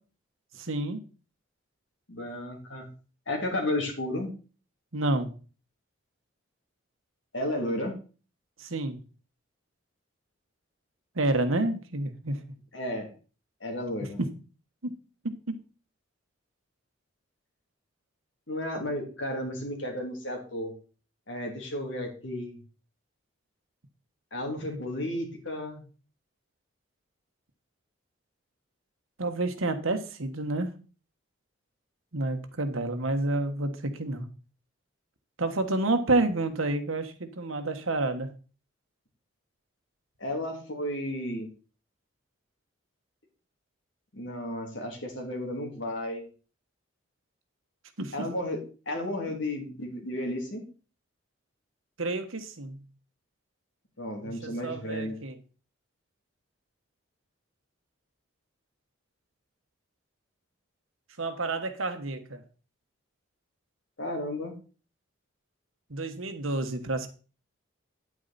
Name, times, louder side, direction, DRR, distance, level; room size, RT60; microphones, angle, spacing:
voice 1, 0.5-1.0 4.9-5.3 8.6-9.0 11.1-12.4 24.7-24.8 29.2-30.7 32.1-34.2 35.4-38.3 48.0-48.3 52.0-52.8 54.2-55.4 61.2-62.4 65.9-67.1, right 2 dB, 85° right, 8 dB, 1.4 m, -29 dB
voice 2, 2.1-2.9 3.3-4.3 7.3-7.9 12.7-13.1 13.6-14.2 18.5-20.7 21.3-22.6 24.3-25.8 40.2-41.5 44.1-46.3 48.1-50.6 54.0-55.2 64.0-64.5, left 1 dB, 70° left, 2 dB, 3.0 m, -33 dB
9.2 x 8.6 x 4.2 m, 0.36 s
head